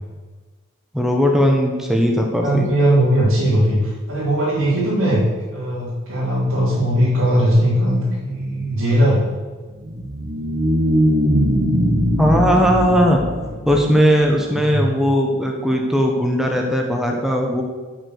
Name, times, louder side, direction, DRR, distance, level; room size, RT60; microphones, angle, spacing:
voice 1, 0.9-2.7 12.2-13.2 13.7-17.6, equal, ahead, 1 dB, 1.0 m, -18 dB
voice 2, 2.4-5.2 5.5-9.2 14.5-14.9, right 1 dB, 80° right, -9 dB, 3.2 m, -19 dB
sound 1, 9.7-14.3, equal, 50° right, 1.3 m, -20 dB
11.5 x 5.1 x 6.5 m, 1.4 s
head